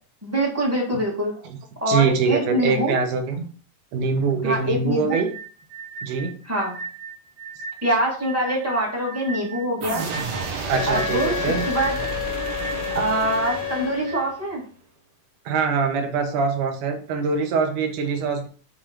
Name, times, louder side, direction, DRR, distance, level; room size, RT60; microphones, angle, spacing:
voice 1, 0.2-1.4 1.8-3.0 4.4-5.2 6.4-6.8 7.8-10.1 10.9-11.4 11.7-11.9 12.9-14.6, right 1 dB, 5° right, -4 dB, 1.2 m, -24 dB
voice 2, 1.9-3.5 3.9-5.3 6.0-6.4 10.7-11.7 15.5-18.5, right 5 dB, 80° right, 4 dB, 2.6 m, -23 dB
sound 1, 5.1-14.2, right 5 dB, 30° right, 0.9 m, -37 dB
sound 2, 9.8-14.5, right 3 dB, 65° right, 2.3 m, -31 dB
Wind instrument woodwind instrument, 10.7-14.3, left 11 dB, 80° left, 1.9 m, -30 dB
6.8 x 3.8 x 4.4 m, 0.42 s
omnidirectional pair, 3.6 m